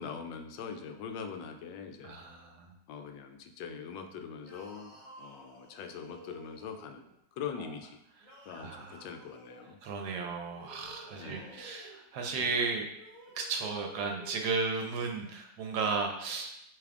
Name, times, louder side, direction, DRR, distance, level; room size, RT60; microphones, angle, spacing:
voice 1, 0.0-2.2 2.9-7.0 7.4-8.0 8.5-9.8 11.2-11.6, left 6 dB, 85° left, 6 dB, 1.3 m, -42 dB
voice 2, 2.0-2.7 8.5-9.1 9.8-12.9 13.3-16.5, right 4 dB, 70° right, 2 dB, 1.1 m, -34 dB
sound 1, 4.4-7.1 8.2-9.7 10.5-12.0 12.9-14.4, equal, 35° right, 1.6 m, -53 dB
6.7 x 3.2 x 2.5 m, 0.79 s
omnidirectional pair, 2.0 m